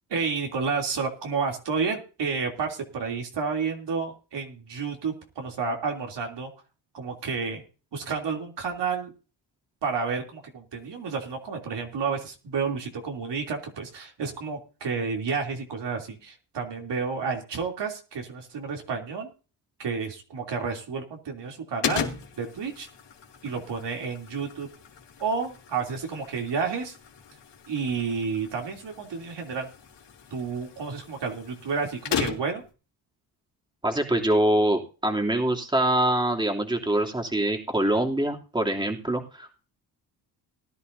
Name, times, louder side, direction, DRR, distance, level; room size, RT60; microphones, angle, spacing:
voice 1, 0.1-6.5 6.9-7.6 7.9-9.1 9.8-19.3 19.8-22.9 23.4-24.7 25.2-26.9 27.7-29.7 30.3-32.6, right 5 dB, 60° right, 1 dB, 3.2 m, -30 dB
sound 1, 21.8-32.7, left 7 dB, 60° left, 3.0 m, -37 dB
voice 2, 33.8-39.6, right 1 dB, 10° right, 2 dB, 3.0 m, -24 dB
19.0 x 11.0 x 2.7 m, 0.34 s
supercardioid pair, 65°, 47 cm